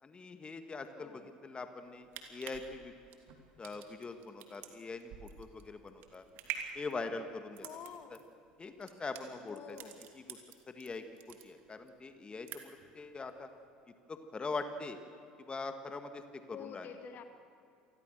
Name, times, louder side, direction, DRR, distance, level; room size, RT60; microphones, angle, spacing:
voice 1, 0.0-2.9 3.6-6.3 6.7-7.8 8.6-9.8 10.1-10.4 10.7-13.5 14.1-15.0 15.4-16.9, left 3 dB, 25° left, 8 dB, 1.8 m, -43 dB
voice 2, 1.0-1.3 7.6-8.2 9.5-10.0 16.5-17.2, left 7 dB, 45° left, 8 dB, 1.9 m, -48 dB
sound 1, 1.9-10.9 11.2-11.9 12.2-12.9 13.3-13.4, right 9 dB, 55° right, 2.8 m, -47 dB
28.0 x 20.5 x 6.7 m, 2.5 s
figure-of-eight pair, 65°, 4 cm